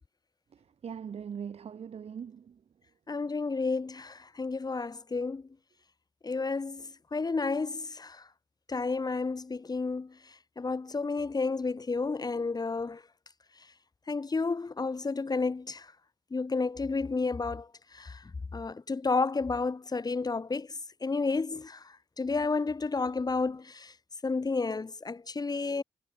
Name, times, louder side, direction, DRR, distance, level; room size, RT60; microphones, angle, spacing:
voice 1, 0.5-2.6, right 7 dB, 65° right, 6.4 m, -41 dB
voice 2, 3.1-5.4 6.2-6.8 7.1-8.2 8.7-10.1 10.6-13.0 14.1-15.8 16.3-17.6 18.0-18.1 18.5-20.7 21.0-21.8 22.2-23.9 24.2-25.8, left 4 dB, 35° left, 2.9 m, -31 dB
supercardioid pair, 55°, 11 cm